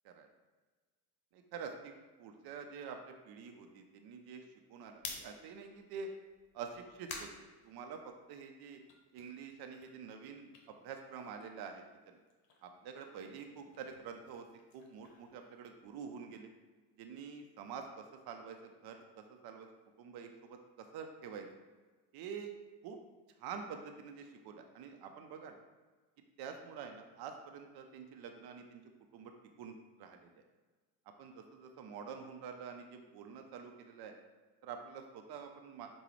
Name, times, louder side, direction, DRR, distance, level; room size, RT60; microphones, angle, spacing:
voice 1, 1.3-4.4 4.7-6.1 6.5-8.0 8.3-8.8 9.1-11.8 12.6-14.5 14.7-16.5 17.0-19.0 19.3-19.7 20.0-21.5 22.1-22.5 22.8-23.0 23.4-25.6 26.4-28.8 29.1-29.3 29.6-30.3 31.2-34.1 34.6-35.9, right 6 dB, 50° right, 4 dB, 0.6 m, -47 dB
sound 1, 5.0-8.4 8.7-11.7 12.0-16.1, left 4 dB, 80° left, 0.8 m, -52 dB
5.0 x 2.3 x 3.0 m, 1.3 s
supercardioid pair, 80°, 47 cm